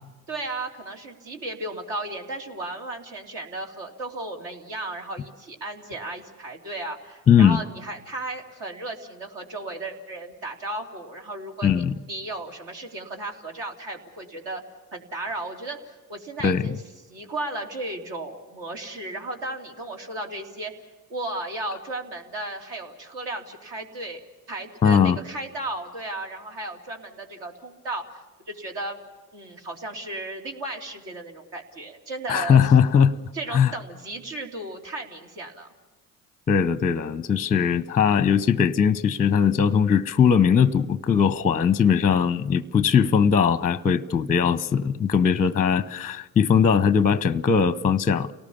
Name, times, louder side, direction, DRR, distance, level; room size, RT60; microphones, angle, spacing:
voice 1, 0.3-14.6 14.9-16.8 17.1-20.7 21.1-24.2 24.5-29.0 29.3-32.7 33.3-35.7, right 2 dB, 60° right, 3.4 m, -35 dB
voice 2, 7.3-7.6 11.6-11.9 16.4-16.6 24.8-25.2 32.3-33.1 33.5-33.7 36.5-48.3, left 7 dB, 15° left, 0.7 m, -20 dB
29.5 x 18.5 x 7.2 m
hypercardioid pair, 60°, 48 cm